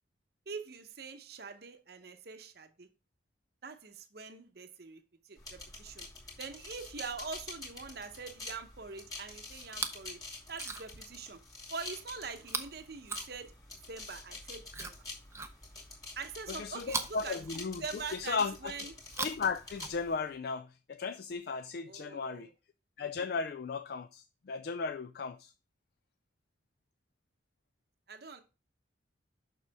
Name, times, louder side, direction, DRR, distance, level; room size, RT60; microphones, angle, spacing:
voice 1, 0.5-2.9 3.6-5.0 5.3-6.1 6.4-10.2 10.5-11.4 11.7-13.5 13.9-14.9 16.2-17.4 17.8-18.9 21.8-22.5 28.1-28.4, right 5 dB, 55° right, 0.8 m, -44 dB
sound 1, 5.4-20.1, left 2 dB, 20° left, 2.2 m, -48 dB
Chewing mastication, 9.6-10.1 10.5-11.1 12.4-13.8 14.7-16.0 16.8-18.1 19.0-20.4 21.3-21.4, right 4 dB, 15° right, 0.5 m, -41 dB
voice 2, 16.6-17.8 18.1-18.7 19.2-22.5 23.0-25.4, left 5 dB, 55° left, 0.3 m, -36 dB
6.8 x 6.1 x 3.4 m
head